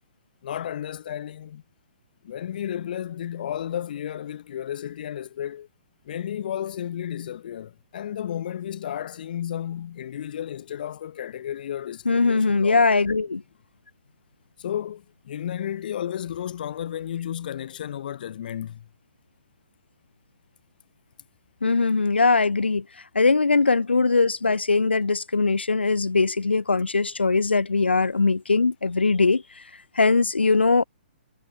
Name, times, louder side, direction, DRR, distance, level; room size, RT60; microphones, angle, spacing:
voice 1, 0.4-1.6 2.2-5.7 6.0-13.0 14.6-18.9, left 10 dB, 55° left, 6.0 m, -33 dB
voice 2, 12.1-13.4 21.6-22.8 23.1-29.6 29.9-30.8, left 4 dB, 80° left, 6.2 m, -21 dB
figure-of-eight pair, 125°, 6 cm